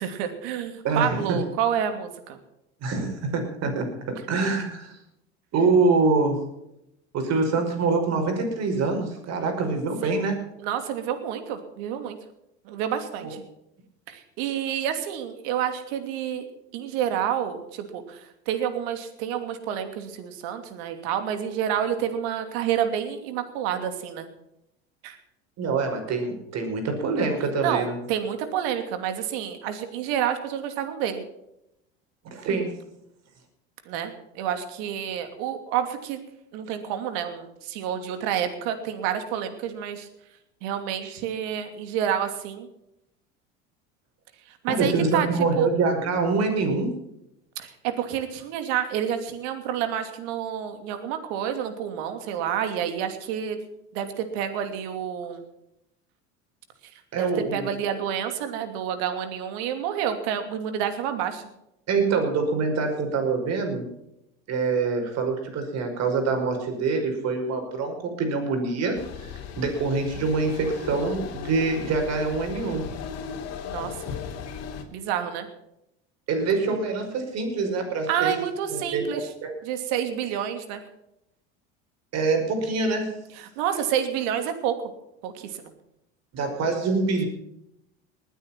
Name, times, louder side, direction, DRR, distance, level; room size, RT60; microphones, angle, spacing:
voice 1, 0.0-2.4 10.0-10.1 10.6-12.2 12.6-13.4 14.1-16.5 16.7-24.3 25.0-25.2 27.6-31.2 33.9-36.2 36.5-40.1 40.6-42.7 44.5-45.3 45.5-45.7 47.6-53.6 53.9-55.4 56.9-61.5 73.7-73.9 74.9-75.5 78.1-79.3 79.6-80.8 83.6-84.9 85.2-85.7, right 9 dB, 70° right, 8 dB, 2.8 m, -29 dB
voice 2, 0.8-1.4 2.8-3.9 4.3-5.0 5.5-6.4 7.1-10.4 13.2-13.3 25.6-28.0 32.2-32.7 44.7-46.9 57.1-57.7 61.9-63.9 64.5-72.9 76.3-78.4 78.7-79.5 82.1-83.1 86.3-87.3, right 4 dB, 50° right, 4 dB, 5.6 m, -25 dB
sound 1, 68.9-74.8, left 7 dB, 50° left, 3.3 m, -37 dB
20.5 x 9.2 x 5.9 m, 0.83 s
supercardioid pair, 95°, 33 cm